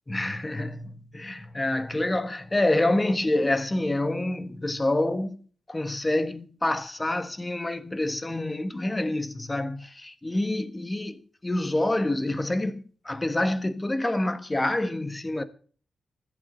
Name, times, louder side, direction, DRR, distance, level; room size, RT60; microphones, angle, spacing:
voice 1, 0.1-5.4 5.7-15.4, left 1 dB, 15° left, 1.1 m, -27 dB
24.5 x 8.4 x 3.8 m
wide cardioid pair, 140°, 0 cm